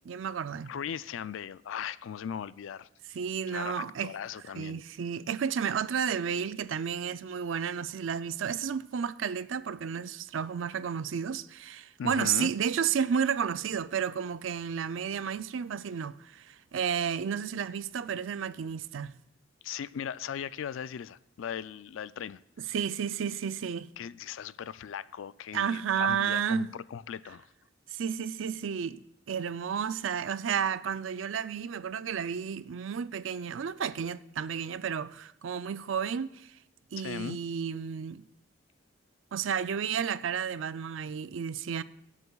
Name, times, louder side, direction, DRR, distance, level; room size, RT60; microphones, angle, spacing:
voice 1, 0.1-0.7 3.1-4.2 4.5-19.1 22.6-23.9 25.5-26.7 27.9-29.0 29.3-36.5 36.9-38.2 39.3-41.8, right 7 dB, 80° right, 0.4 m, -32 dB
voice 2, 0.7-2.9 3.5-4.8 12.0-12.5 19.6-22.4 24.0-27.5 37.0-37.4, left 8 dB, 80° left, 0.3 m, -38 dB
23.5 x 8.2 x 2.3 m
head